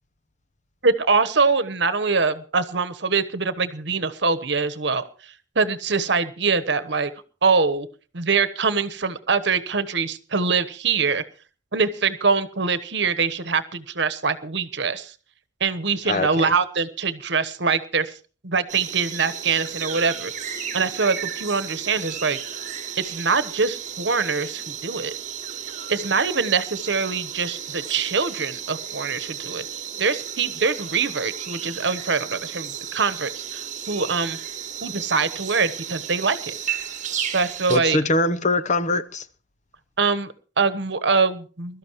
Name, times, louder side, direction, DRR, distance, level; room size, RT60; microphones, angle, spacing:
voice 1, 0.8-7.1 7.4-7.9 8.1-11.2 11.7-15.1 15.6-18.1 18.4-22.4 23.0-25.1 25.9-29.6 30.0-34.4 34.8-36.5 37.3-38.0 40.0-41.8, right 4 dB, 65° right, 1.2 m, -24 dB
voice 2, 16.1-16.5 37.7-39.2, left 2 dB, 40° left, 0.8 m, -22 dB
sound 1, 18.7-37.8, right 9 dB, 40° right, 1.5 m, -34 dB
22.0 x 13.0 x 3.1 m
head